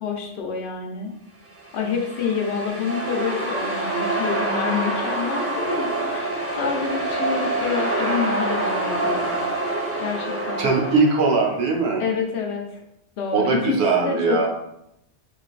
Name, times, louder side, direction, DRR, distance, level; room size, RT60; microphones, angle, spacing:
voice 1, 0.0-1.1 1.7-9.4 10.0-10.7 12.0-12.6 13.2-14.5, left 5 dB, 75° left, 1 dB, 0.8 m, -27 dB
sound 1, 1.6-11.4, right 2 dB, 25° right, 0.3 m, -26 dB
voice 2, 10.6-12.0 13.3-14.5, right 4 dB, 70° right, 0 dB, 0.8 m, -20 dB
3.2 x 2.5 x 2.4 m, 0.79 s
omnidirectional pair, 1.2 m